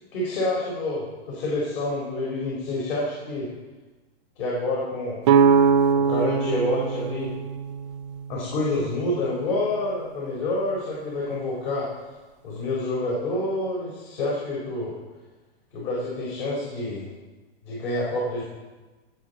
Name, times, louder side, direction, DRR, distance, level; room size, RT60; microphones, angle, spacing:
voice 1, 0.1-3.5 4.4-5.2 6.0-7.3 8.3-11.9 12.4-15.0 15.7-17.1 17.6-18.4, left 2 dB, 60° left, -5 dB, 4.2 m, -28 dB
sound 1, 5.2-9.1, right 6 dB, 30° right, 0.4 m, -22 dB
18.0 x 7.5 x 4.1 m, 1.2 s
hypercardioid pair, 155°, 32 cm